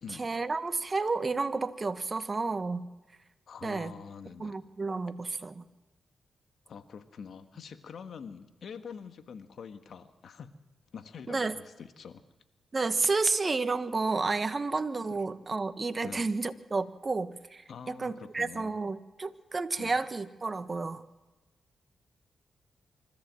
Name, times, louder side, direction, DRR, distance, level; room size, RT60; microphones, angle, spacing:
voice 1, 0.2-2.9 3.6-3.9 4.4-5.6 11.3-11.6 12.7-17.6 17.9-21.0, right 3 dB, 40° right, 11 dB, 1.3 m, -31 dB
voice 2, 3.5-4.5 6.7-10.5 10.9-12.2 13.1-13.3 15.1-15.2 16.0-16.3 17.7-18.8 19.8-20.0, left 6 dB, 70° left, 9 dB, 1.5 m, -45 dB
25.5 x 14.0 x 7.7 m, 1.1 s
supercardioid pair, 50°, 0 cm